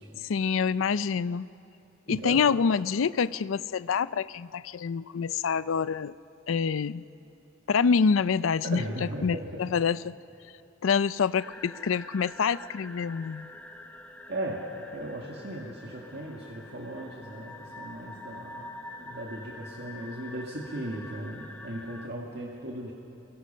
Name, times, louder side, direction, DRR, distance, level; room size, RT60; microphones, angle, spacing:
voice 1, 0.2-1.5 2.1-6.1 6.5-7.0 7.7-8.8 9.2-10.2 10.8-13.5, left 6 dB, 85° left, 17 dB, 0.4 m, -26 dB
voice 2, 2.1-2.4 8.6-9.5 14.3-14.6 14.9-18.7 19.0-22.9, right 1 dB, 55° right, -2 dB, 2.1 m, -37 dB
sound 1, 11.3-22.1, left 2 dB, 10° left, 0.8 m, -46 dB
27.5 x 22.5 x 5.6 m, 2.8 s
head